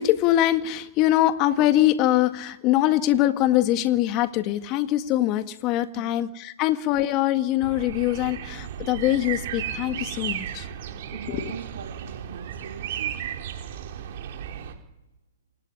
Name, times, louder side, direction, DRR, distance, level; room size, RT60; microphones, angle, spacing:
voice 1, 0.0-10.7 11.1-11.5, left 14 dB, 35° left, 1.8 m, -23 dB
voice 2, 5.9-6.3 11.1-13.2, right 6 dB, 80° right, 2.1 m, -41 dB
sound 1, 7.6-14.7, right 9 dB, 55° right, 4.5 m, -34 dB
27.0 x 18.0 x 10.0 m
hypercardioid pair, 135°, 0 cm